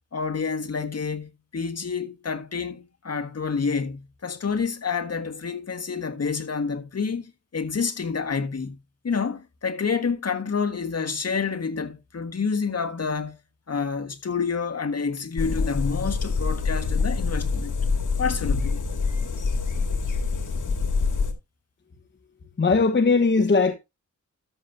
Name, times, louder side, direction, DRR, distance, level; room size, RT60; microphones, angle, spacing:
voice 1, 0.1-8.7 9.0-13.3 13.7-17.7 18.2-18.8, left 5 dB, 50° left, 1.5 m, -28 dB
sound 1, 15.4-21.3, left 4 dB, 75° left, 2.1 m, -25 dB
voice 2, 22.6-23.7, left 4 dB, 35° left, 1.1 m, -19 dB
13.5 x 7.1 x 2.6 m
cardioid pair, 70°, 31 cm